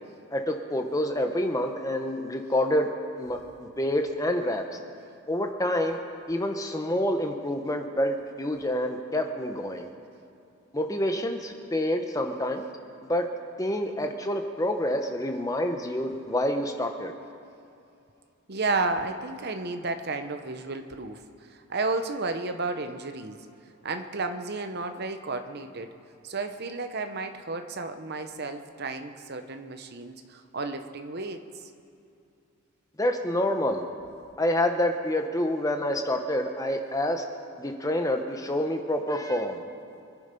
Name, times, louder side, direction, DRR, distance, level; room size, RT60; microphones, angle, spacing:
voice 1, 0.3-2.9 3.2-4.6 5.3-6.0 6.3-9.9 10.7-12.6 13.1-13.3 13.6-17.1 33.0-33.8 34.4-37.2 37.6-39.6, left 1 dB, 15° left, 5 dB, 0.9 m, -27 dB
voice 2, 18.5-23.5 23.8-25.9 26.2-31.7, right 3 dB, 50° right, 7 dB, 0.9 m, -32 dB
25.0 x 10.0 x 5.3 m, 2.6 s
head